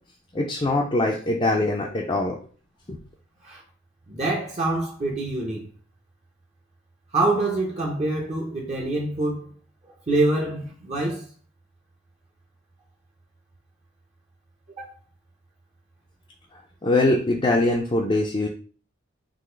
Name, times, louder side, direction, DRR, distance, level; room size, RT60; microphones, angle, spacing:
voice 1, 0.3-2.4 2.9-3.0 16.8-18.5, left 2 dB, 25° left, 0.5 m, -22 dB
voice 2, 4.1-5.6 7.1-9.5 10.1-11.2 14.8-14.9, right 2 dB, 30° right, 0.7 m, -25 dB
3.9 x 2.9 x 4.4 m
head